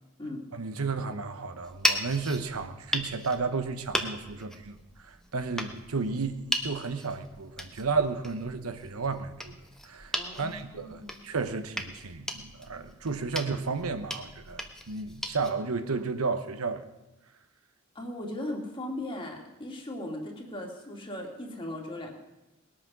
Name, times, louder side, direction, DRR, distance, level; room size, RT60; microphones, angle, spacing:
voice 1, 0.5-9.6 9.8-16.9, right 4 dB, 85° right, 9 dB, 1.0 m, -33 dB
sound 1, 1.6-15.5, equal, ahead, 1.0 m, -37 dB
voice 2, 10.1-11.2 17.9-22.1, left 1 dB, 25° left, 1 dB, 2.4 m, -38 dB
20.0 x 8.7 x 6.1 m, 1.0 s
head